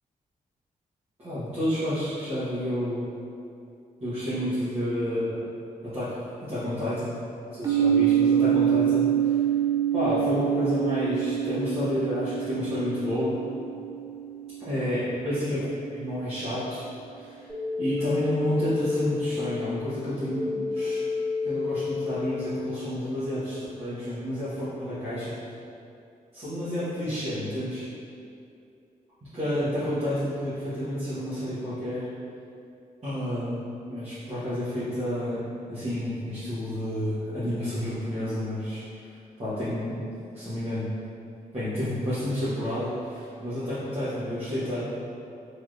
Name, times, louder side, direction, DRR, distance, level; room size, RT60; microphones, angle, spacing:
voice 1, 1.2-3.1 4.0-5.4 5.8-6.1 6.4-7.1 7.5-9.4 9.9-13.4 14.7-15.6 15.9-16.9 17.1-17.5 17.8-21.0 21.4-25.4 26.3-27.9 29.3-32.1 33.0-33.6 33.9-35.4 35.7-38.8 39.4-40.0 40.3-40.9 41.5-44.9, equal, 45° right, -15 dB, 1.1 m, -30 dB
sound 1, 7.6-15.4, right 10 dB, 25° right, 0.4 m, -26 dB
sound 2, 17.5-23.1, left 4 dB, 15° left, 1.2 m, -31 dB
3.4 x 2.9 x 2.5 m, 2.5 s
cardioid pair, 100°, 15 cm